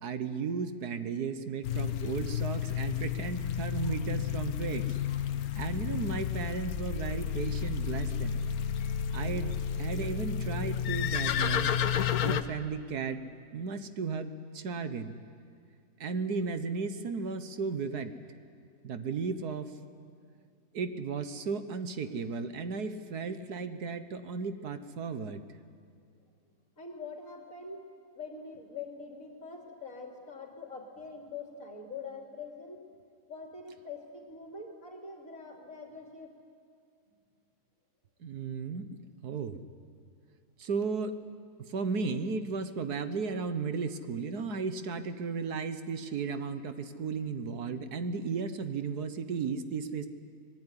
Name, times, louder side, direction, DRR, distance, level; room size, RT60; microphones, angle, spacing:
voice 1, 0.0-4.8 5.6-8.4 9.1-11.8 12.2-13.2 13.5-15.2 16.0-18.1 18.8-19.7 20.7-25.4 38.2-38.9 39.2-39.6 40.6-41.1 41.6-50.1, right 5 dB, 70° right, 10 dB, 1.7 m, -35 dB
sound 1, 1.6-12.4, left 8 dB, 65° left, 1.3 m, -31 dB
voice 2, 26.8-27.9 28.2-32.8 33.3-36.3, left 4 dB, 50° left, 2 dB, 3.7 m, -44 dB
25.0 x 20.5 x 9.9 m, 2.3 s
omnidirectional pair, 1.8 m